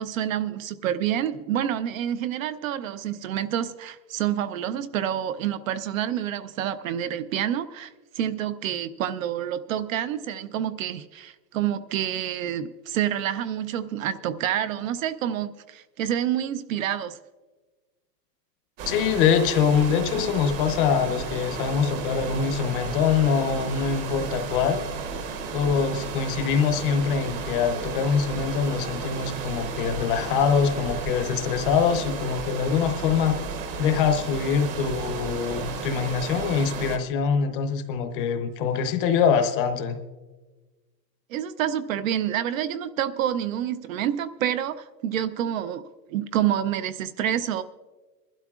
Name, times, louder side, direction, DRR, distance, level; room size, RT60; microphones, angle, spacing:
voice 1, 0.0-17.2 41.3-45.8 46.1-47.6, right 10 dB, 55° right, 13 dB, 0.6 m, -28 dB
sound 1, 18.8-37.0, right 4 dB, 35° right, 0.9 m, -33 dB
voice 2, 18.9-24.8 25.5-33.3 33.8-40.0, left 6 dB, 30° left, 7 dB, 0.8 m, -24 dB
24.0 x 12.0 x 2.4 m, 1.2 s
supercardioid pair, 160°, 50 cm